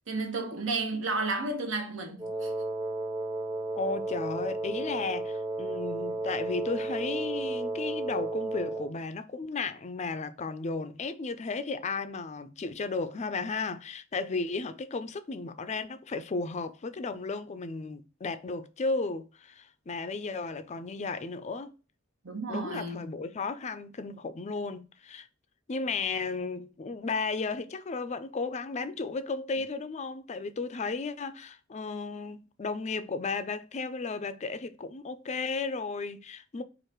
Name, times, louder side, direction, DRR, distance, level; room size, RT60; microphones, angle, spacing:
voice 1, 0.1-2.5 22.2-23.1, right 3 dB, 65° right, 1.1 m, -32 dB
Wind instrument woodwind instrument, 2.2-9.0, right 2 dB, 20° right, 0.9 m, -33 dB
voice 2, 3.8-21.7 22.5-25.3 25.7-36.6, left 4 dB, 35° left, 0.4 m, -34 dB
4.8 x 2.5 x 4.4 m
head